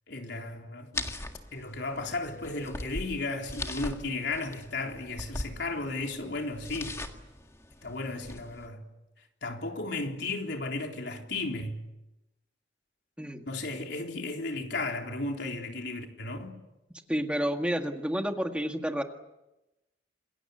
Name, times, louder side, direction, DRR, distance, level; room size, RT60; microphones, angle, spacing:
voice 1, 0.1-1.2 1.5-7.0 7.8-8.8 9.4-11.8 13.5-16.5, left 2 dB, 65° left, 3.7 m, -34 dB
sound 1, 0.9-8.7, left 2 dB, 15° left, 1.8 m, -40 dB
voice 2, 17.1-19.0, equal, 5° right, 1.8 m, -30 dB
28.0 x 20.5 x 8.1 m
head